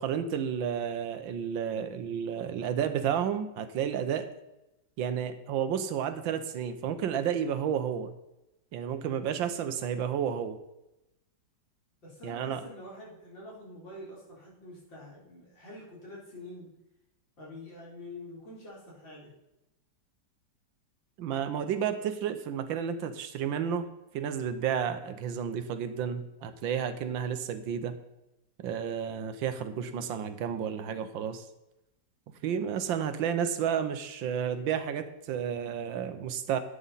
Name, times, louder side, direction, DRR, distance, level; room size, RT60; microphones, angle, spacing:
voice 1, 0.0-4.3 5.0-8.1 8.7-10.6 12.2-12.6 21.2-23.9 24.1-28.0 28.6-31.4 32.4-36.6, right 8 dB, 80° right, 10 dB, 1.6 m, -31 dB
voice 2, 12.0-16.7 17.4-19.3, left 1 dB, 70° left, -5 dB, 4.3 m, -46 dB
11.5 x 9.0 x 4.1 m, 0.93 s
omnidirectional pair, 2.1 m